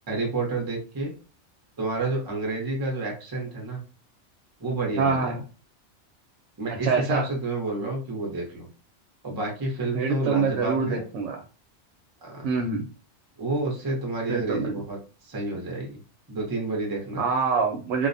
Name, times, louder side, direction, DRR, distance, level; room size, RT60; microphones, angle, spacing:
voice 1, 0.1-1.1 1.8-3.8 4.6-5.3 6.6-8.7 9.2-11.0 12.2-12.5 13.4-16.0 16.3-17.2, right 2 dB, 25° right, 0 dB, 0.6 m, -29 dB
voice 2, 5.0-5.4 6.8-7.3 9.9-11.4 12.4-12.9 14.3-14.8 17.2-18.1, right 5 dB, 75° right, 2 dB, 0.9 m, -25 dB
2.4 x 2.0 x 2.6 m, 0.34 s
omnidirectional pair, 1.2 m